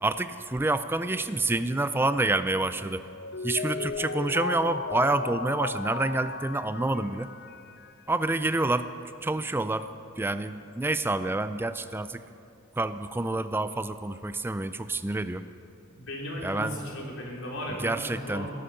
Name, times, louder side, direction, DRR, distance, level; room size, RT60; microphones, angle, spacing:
voice 1, 0.0-3.0 3.4-7.3 8.1-8.9 9.2-9.9 10.2-12.2 12.8-15.4 16.4-16.8 17.8-18.5, right 2 dB, 10° right, 12 dB, 0.4 m, -28 dB
Mallet percussion, 3.1-8.0, left 4 dB, 55° left, 0.6 m, -35 dB
voice 2, 15.9-18.5, equal, 90° left, -2 dB, 3.6 m, -36 dB
18.0 x 13.0 x 5.7 m, 2.6 s
head